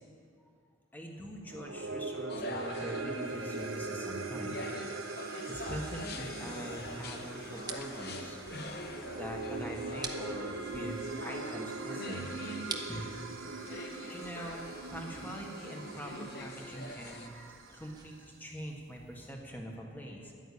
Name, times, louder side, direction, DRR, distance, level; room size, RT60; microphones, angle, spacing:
voice 1, 0.9-4.8 5.5-11.0 11.2-12.3 12.9-13.0 13.7-20.3, equal, 10° left, 0 dB, 1.5 m, -43 dB
sound 1, 1.4-17.9, right 3 dB, 80° right, 0.8 m, -41 dB
sound 2, 2.3-17.3, left 2 dB, 50° left, 0.9 m, -45 dB
sound 3, 6.7-18.1, right 4 dB, 20° right, 0.8 m, -49 dB
11.0 x 9.2 x 8.6 m, 2.2 s
head